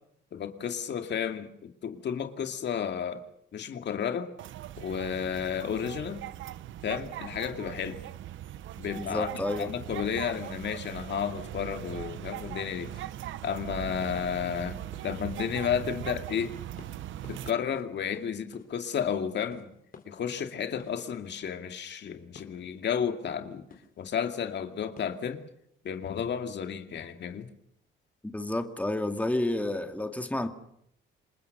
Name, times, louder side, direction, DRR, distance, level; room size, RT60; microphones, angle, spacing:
voice 1, 0.3-3.2 3.5-4.3 4.8-6.2 6.8-8.0 8.8-9.3 9.6-12.9 13.4-14.8 15.0-16.5 17.3-19.7 20.1-23.6 24.0-25.4 25.8-27.5, left 8 dB, 60° left, 2.4 m, -32 dB
sound 1, 4.4-17.5, right 13 dB, 80° right, 0.9 m, -40 dB
voice 2, 8.9-9.7 28.3-30.5, left 1 dB, 5° left, 2.3 m, -30 dB
sound 2, 14.0-14.2 14.4-14.6 14.9-15.1 15.4-15.6 15.8-16.0 16.3-16.5 16.8-16.9 17.2-17.4 17.7-18.7 19.0-19.1 19.5-19.7 19.9-20.1 20.4-20.5 20.8-20.9 22.3-22.6 23.7-23.9 25.0-25.2, left 5 dB, 45° left, 4.1 m, -50 dB
27.5 x 21.0 x 6.8 m
cardioid pair, 90°, 20 cm